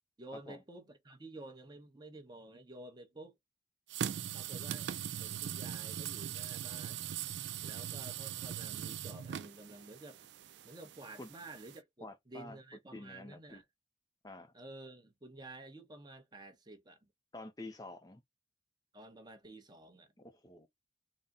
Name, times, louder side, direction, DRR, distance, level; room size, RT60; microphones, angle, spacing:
voice 1, 0.2-3.3 4.3-4.9 5.2-7.1 7.6-10.3 10.6-13.6 14.5-17.1 18.9-20.1, right 2 dB, 20° right, 0.8 m, -51 dB
sound 1, 3.9-11.8, right 10 dB, 65° right, 0.3 m, -41 dB
voice 2, 12.0-12.6 12.9-13.6 14.2-14.5 17.3-18.2 20.2-20.7, left 2 dB, 20° left, 0.5 m, -48 dB
3.9 x 2.1 x 3.5 m
head